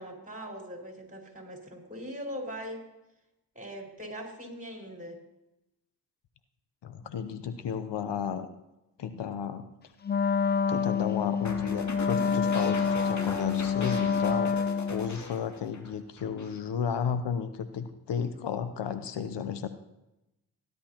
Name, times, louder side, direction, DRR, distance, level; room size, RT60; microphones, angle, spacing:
voice 1, 0.0-2.8 3.6-5.2 7.0-7.1, equal, 20° right, 0 dB, 5.0 m, -41 dB
voice 2, 6.8-8.5 9.0-9.7 10.7-14.6 14.9-19.7, left 7 dB, 80° left, 10 dB, 0.8 m, -33 dB
Wind instrument woodwind instrument, 10.0-15.2, left 6 dB, 25° left, 0.4 m, -27 dB
sound 1, 11.4-15.9 16.2-16.6, left 2 dB, 40° left, 2.0 m, -39 dB
18.0 x 11.0 x 2.9 m, 0.91 s
cardioid pair, 45°, 41 cm